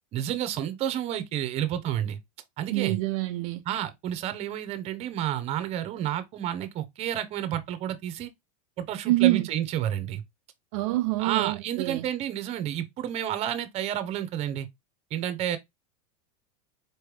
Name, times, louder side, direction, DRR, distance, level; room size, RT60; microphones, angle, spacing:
voice 1, 0.1-2.2 2.6-3.0 3.7-8.3 8.8-10.2 11.2-14.7 15.1-15.6, right 11 dB, 35° right, 0.8 m, -30 dB
voice 2, 2.7-3.6 9.1-9.5 10.7-12.1, right 18 dB, 55° right, 0.4 m, -25 dB
4.6 x 3.2 x 3.3 m
supercardioid pair, 145°, 19 cm